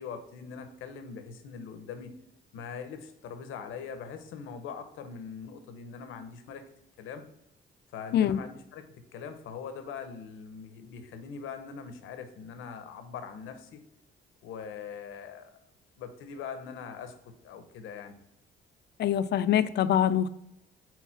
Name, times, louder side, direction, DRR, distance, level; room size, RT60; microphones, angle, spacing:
voice 1, 0.0-2.1 2.5-6.7 7.0-7.2 7.9-13.8 14.4-15.5 16.0-18.2, left 6 dB, 85° left, 9 dB, 0.8 m, -42 dB
voice 2, 19.0-20.3, left 10 dB, 60° left, 13 dB, 0.4 m, -24 dB
4.7 x 4.0 x 5.6 m, 0.84 s
cardioid pair, 90°, 20 cm